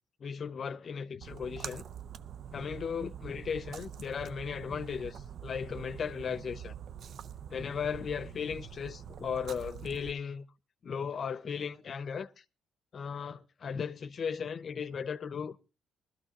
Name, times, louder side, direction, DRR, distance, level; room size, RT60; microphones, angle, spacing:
voice 1, 0.2-1.8 2.5-6.7 7.5-10.4 10.8-12.4 12.9-15.7, left 6 dB, 50° left, 0.7 m, -36 dB
Splash splatter, 1.2-10.1, right 8 dB, 65° right, 0.7 m, -45 dB
20.0 x 13.0 x 2.9 m
cardioid pair, 90°, 0 cm